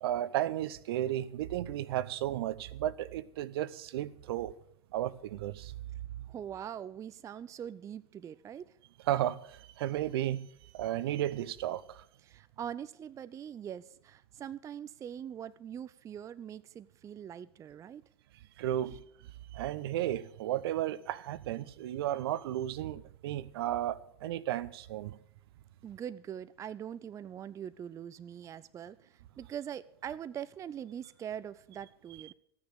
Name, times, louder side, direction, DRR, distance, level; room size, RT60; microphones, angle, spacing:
voice 1, 0.0-4.5 4.9-5.7 9.1-10.4 10.7-12.0 18.6-19.0 19.5-25.2, right 13 dB, 65° right, 0.7 m, -34 dB
voice 2, 6.3-8.7 12.2-18.0 18.8-19.0 25.8-32.3, right 9 dB, 20° right, 0.5 m, -42 dB
14.0 x 9.6 x 6.6 m
hypercardioid pair, 90°, 14 cm